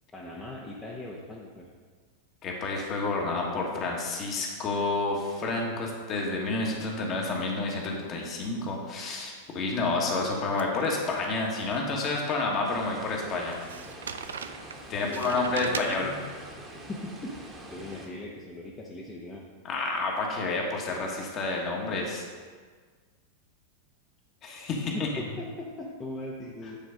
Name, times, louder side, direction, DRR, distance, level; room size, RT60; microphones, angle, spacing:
voice 1, 0.1-1.7 15.0-16.3 16.9-17.3 17.7-19.4 24.8-26.8, left 2 dB, 15° left, -4 dB, 1.0 m, -39 dB
voice 2, 2.4-13.5 14.9-16.1 19.6-22.2 24.4-25.1, left 3 dB, 30° left, 0 dB, 1.5 m, -29 dB
sound 1, 10.2-12.2 12.6-12.7 13.5-16.4, right 7 dB, 65° right, 0.3 m, -40 dB
sound 2, 12.6-18.1, right 1 dB, 15° right, 1.4 m, -45 dB
9.0 x 4.5 x 5.2 m, 1.5 s
figure-of-eight pair, 90°, 0 cm